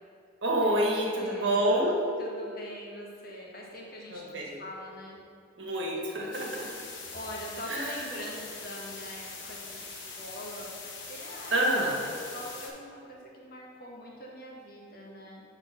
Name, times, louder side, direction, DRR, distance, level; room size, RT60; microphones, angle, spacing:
voice 1, 0.4-2.1 4.1-4.6 5.6-6.9 7.7-8.1 11.5-12.1, right 1 dB, 65° right, -2 dB, 1.4 m, -28 dB
voice 2, 1.0-1.6 2.2-5.2 7.1-10.8 11.0-11.6 12.0-15.4, equal, 50° left, -2 dB, 1.4 m, -43 dB
sound 1, 6.3-12.7, left 4 dB, 70° left, 1.3 m, -43 dB
7.6 x 4.2 x 5.9 m, 2.4 s
head